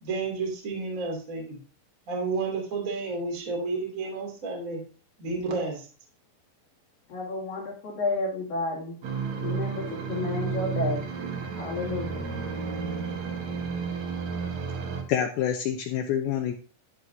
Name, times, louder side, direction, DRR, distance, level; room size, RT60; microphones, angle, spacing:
voice 1, 0.0-1.6 2.1-4.8 5.2-5.8, right 3 dB, 25° right, 0 dB, 1.9 m, -31 dB
voice 2, 7.1-9.0 9.4-11.1 11.6-12.3, left 3 dB, 55° left, -4 dB, 3.9 m, -31 dB
sound 1, 9.0-15.0, right 5 dB, 70° right, 1.7 m, -32 dB
voice 3, 15.1-16.5, left 9 dB, 80° left, 5 dB, 2.2 m, -27 dB
11.5 x 7.7 x 2.7 m, 0.37 s
omnidirectional pair, 5.2 m